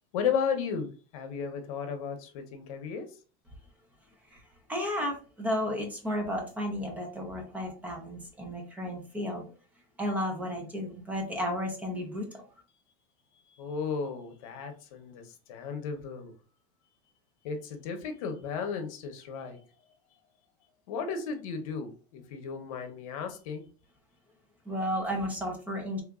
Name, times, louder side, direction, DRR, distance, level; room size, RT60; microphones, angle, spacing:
voice 1, 0.1-3.1 13.6-15.2 15.5-16.3 17.4-19.6 20.9-23.6, left 6 dB, 65° left, 0.8 m, -34 dB
voice 2, 4.7-9.5 10.0-12.3 24.7-26.0, equal, 10° right, 0.5 m, -33 dB
3.3 x 2.8 x 2.4 m
supercardioid pair, 180°, 19 cm